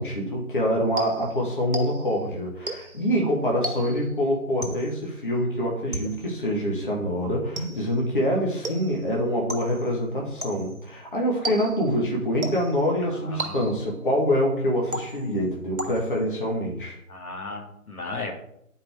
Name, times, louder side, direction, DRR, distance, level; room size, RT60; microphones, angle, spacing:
voice 1, 0.0-17.0, equal, 35° left, -2 dB, 1.3 m, -25 dB
sound 1, 1.0-2.2 2.7-3.1 3.6-4.1 4.6-5.0 5.9-6.4 7.6-8.0 8.6-9.1 9.5-9.9 10.4-10.8 11.4-11.9 12.4-12.9 13.4-14.0 14.9-15.4 15.8-16.3, right 1 dB, 65° right, 1.4 m, -34 dB
voice 2, 13.0-13.7 17.1-18.3, left 3 dB, 75° left, 2 dB, 1.9 m, -36 dB
10.5 x 4.6 x 3.4 m, 0.74 s
figure-of-eight pair, 170°, 45 cm